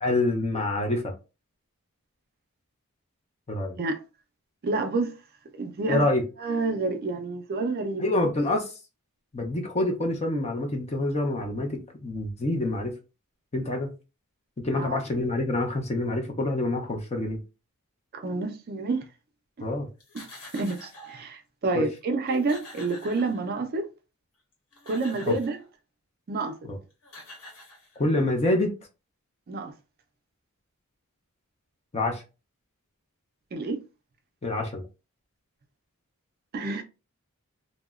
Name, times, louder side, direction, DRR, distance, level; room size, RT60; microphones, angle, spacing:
voice 1, 0.0-1.1 3.5-3.7 5.9-6.2 8.0-8.7 9.3-12.9 13.5-13.9 14.6-17.4 19.6-19.9 21.7-21.9 25.3-25.4 26.7-26.8 28.0-28.7 31.9-32.2 34.4-34.8, left 2 dB, 30° left, 0.5 m, -26 dB
voice 2, 4.6-5.1 5.6-6.0 6.4-8.0 14.7-15.0 18.1-19.1 20.1-20.2 20.5-23.9 24.9-25.6 26.3-26.6 29.5-29.7 33.5-33.8 36.5-36.8, right 3 dB, 45° right, 0.4 m, -28 dB
sound 1, 20.0-21.3 22.0-22.1 22.3-23.8 24.5-25.6 26.7-26.8 27.0-28.3, left 1 dB, 75° left, 1.1 m, -46 dB
2.8 x 2.1 x 2.3 m
head